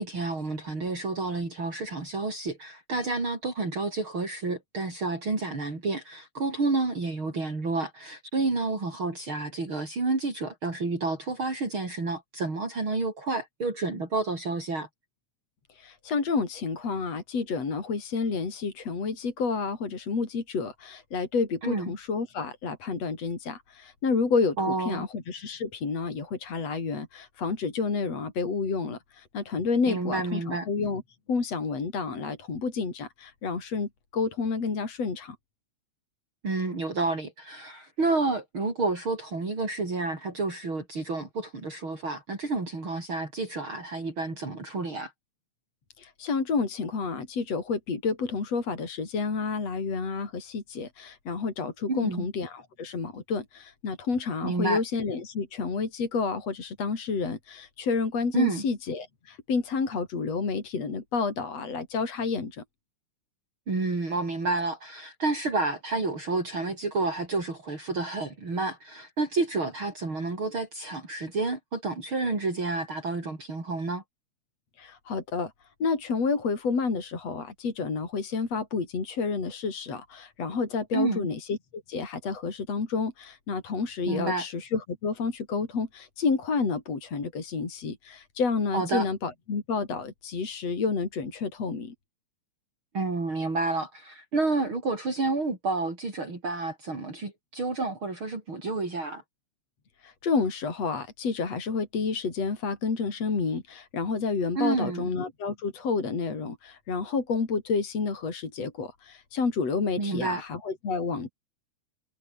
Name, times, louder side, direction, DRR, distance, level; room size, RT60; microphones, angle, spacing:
voice 1, 0.0-14.9 21.6-21.9 24.6-25.1 29.9-30.7 36.4-45.1 51.9-52.3 54.4-54.8 58.3-58.6 63.7-74.0 80.9-81.3 84.1-84.5 88.7-89.1 92.9-99.2 104.6-105.0 110.0-110.4, right 3 dB, 40° right, 6.3 m, -30 dB
voice 2, 15.7-31.0 31.3-35.4 46.0-62.6 74.8-75.5 75.8-91.9 100.0-111.3, left 4 dB, 60° left, 5.5 m, -30 dB
omnidirectional pair, 3.3 m